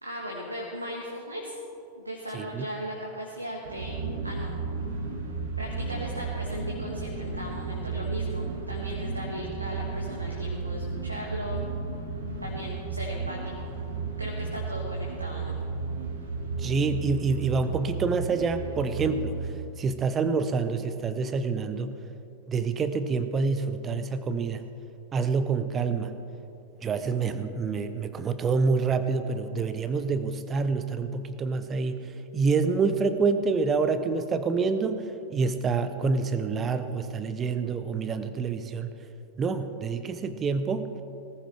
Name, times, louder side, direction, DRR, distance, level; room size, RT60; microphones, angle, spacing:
voice 1, 0.0-1.6 1.9-3.9 4.2-4.5 5.6-11.6 12.4-13.7 14.2-15.5, equal, 85° right, -2 dB, 1.5 m, -37 dB
voice 2, 2.3-2.7 16.6-19.4 19.8-21.9 22.5-24.6 25.1-26.1 26.8-32.0 32.3-35.0 35.3-38.9 39.4-40.9, right 4 dB, 25° right, 11 dB, 0.8 m, -27 dB
sound 1, 3.6-19.5, right 4 dB, 60° right, 1.8 m, -33 dB
19.0 x 14.5 x 3.4 m, 2.8 s
figure-of-eight pair, 90°, 0 cm